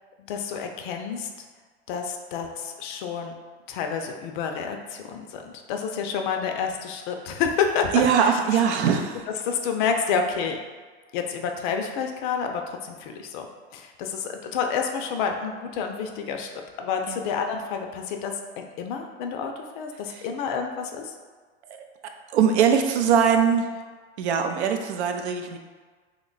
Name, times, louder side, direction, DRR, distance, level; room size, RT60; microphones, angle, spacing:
voice 1, 0.3-1.3 1.9-3.3 3.7-8.6 9.4-10.6 11.1-13.5 13.7-16.5 16.8-21.1, left 6 dB, 50° left, 4 dB, 0.4 m, -29 dB
voice 2, 7.9-9.2 17.1-17.2 20.1-20.2 22.3-23.7 24.2-25.6, right 7 dB, 75° right, 5 dB, 0.5 m, -21 dB
3.0 x 2.2 x 3.8 m, 1.4 s
hypercardioid pair, 125°, 34 cm